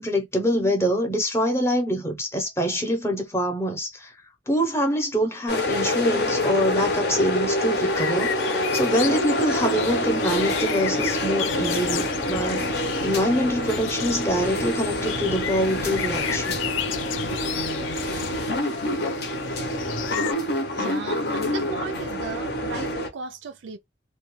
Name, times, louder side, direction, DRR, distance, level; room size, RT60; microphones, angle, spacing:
voice 1, 0.0-4.1 4.5-8.4 8.7-16.6, equal, 15° left, 0.7 m, -25 dB
sound 1, 5.5-23.1, left 1 dB, 55° left, 0.7 m, -26 dB
sound 2, 7.7-20.3, left 11 dB, 80° left, 0.3 m, -34 dB
voice 2, 20.7-23.8, right 5 dB, 75° right, 0.4 m, -36 dB
2.3 x 2.2 x 3.0 m
head